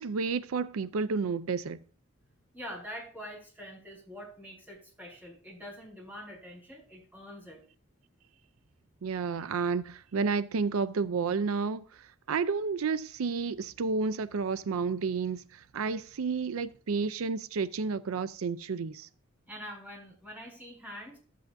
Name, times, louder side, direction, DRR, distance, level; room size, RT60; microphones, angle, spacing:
voice 1, 0.0-1.8 9.0-19.1, right 5 dB, 85° right, 0.5 m, -31 dB
voice 2, 2.5-7.6 19.5-21.2, equal, 10° right, 4.8 m, -45 dB
12.5 x 8.3 x 2.6 m
head